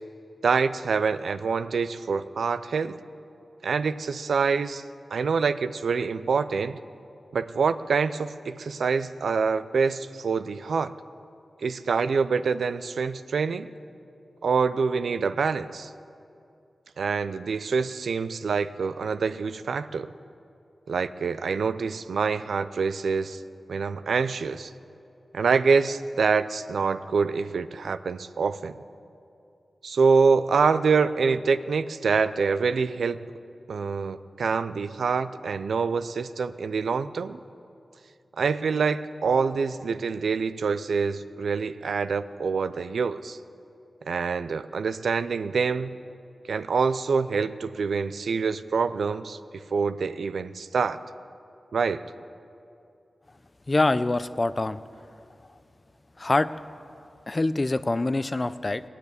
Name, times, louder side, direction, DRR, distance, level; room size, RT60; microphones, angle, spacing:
voice 1, 0.4-3.0 3.6-4.8 5.1-6.8 7.3-10.9 11.6-13.7 14.4-15.9 17.0-20.1 20.9-23.4 23.7-24.7 25.3-28.8 29.8-33.3 33.7-37.4 38.4-43.4 44.1-46.0 46.5-51.0 51.7-52.1, right 5 dB, 85° right, 13 dB, 0.5 m, -26 dB
voice 2, 53.7-54.8 56.2-56.5 57.3-58.8, left 2 dB, 35° left, 14 dB, 0.5 m, -24 dB
19.5 x 7.0 x 9.7 m, 2.6 s
wide cardioid pair, 75°, 0 cm